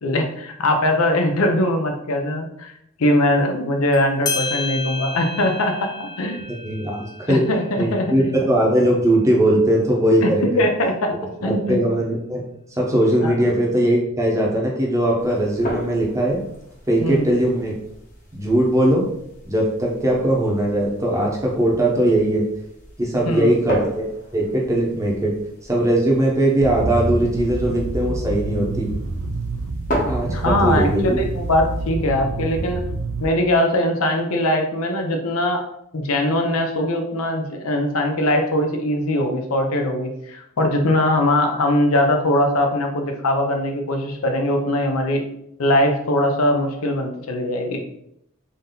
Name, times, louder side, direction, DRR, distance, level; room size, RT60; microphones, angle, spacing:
voice 1, 0.0-2.7 3.0-6.4 7.3-8.3 10.2-10.3 10.6-11.8 13.2-13.3 17.0-17.2 23.2-23.5 30.3-32.8 33.2-35.6 35.9-45.2 45.6-47.8, left 1 dB, 75° left, 4 dB, 0.6 m, -21 dB
sound 1, 3.9-4.0 4.3-9.3, left 3 dB, 20° left, 0.4 m, -32 dB
voice 2, 6.6-7.5 7.8-10.6 11.4-12.4 12.7-16.4 16.9-17.7 18.3-19.0 19.4-22.4 23.0-24.0 24.3-25.3 25.6-28.9 30.1-31.2, right 1 dB, 15° right, -3 dB, 0.8 m, -20 dB
sound 2, 15.2-31.9, equal, 35° left, 0.9 m, -36 dB
sound 3, 26.6-33.3, right 3 dB, 65° right, 0.4 m, -27 dB
3.8 x 2.7 x 3.7 m, 0.77 s
head